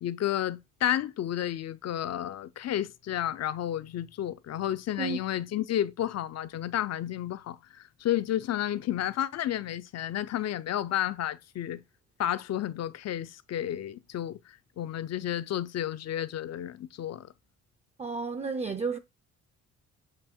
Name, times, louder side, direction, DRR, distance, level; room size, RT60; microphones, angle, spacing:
voice 1, 0.0-11.8 12.2-17.3, left 11 dB, 55° left, 0.6 m, -31 dB
voice 2, 18.0-19.0, right 4 dB, 20° right, 0.5 m, -32 dB
7.8 x 3.0 x 4.4 m
cardioid pair, 90°, 30 cm